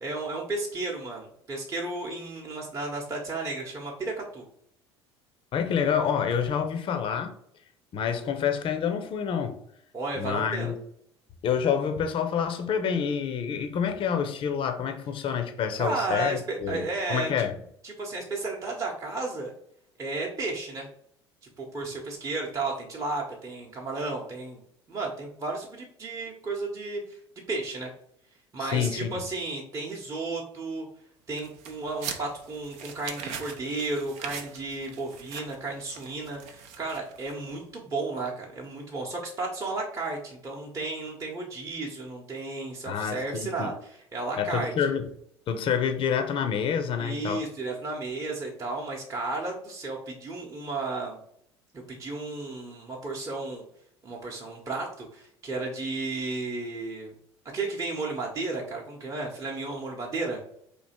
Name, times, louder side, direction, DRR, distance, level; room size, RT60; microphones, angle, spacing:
voice 1, 0.0-4.4 9.9-10.7 15.8-17.5 17.8-19.5 20.0-20.9 21.6-24.6 24.9-27.2 27.5-27.9 28.5-30.9 31.3-44.7 47.0-51.2 51.7-53.6 54.0-57.1 57.5-60.4, right 3 dB, 25° right, 0.9 m, -33 dB
voice 2, 5.5-7.3 7.9-9.6 10.2-10.8 11.4-17.5 28.6-29.1 42.9-43.7 44.4-45.1 45.5-47.4, left 7 dB, 40° left, 0.6 m, -28 dB
sound 1, 31.3-37.5, right 7 dB, 50° right, 0.6 m, -41 dB
3.2 x 2.8 x 4.2 m
figure-of-eight pair, 65°, 14 cm